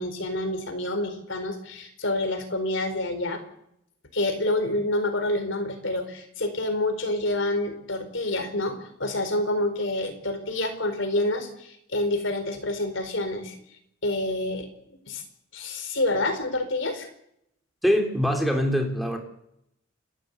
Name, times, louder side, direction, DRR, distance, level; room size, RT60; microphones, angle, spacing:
voice 1, 0.0-3.4 4.1-13.5 14.0-14.7 15.1-15.2 15.5-17.1, left 1 dB, 60° left, 8 dB, 4.5 m, -28 dB
voice 2, 17.8-19.2, equal, ahead, 3 dB, 3.5 m, -23 dB
29.5 x 13.0 x 8.3 m, 0.75 s
head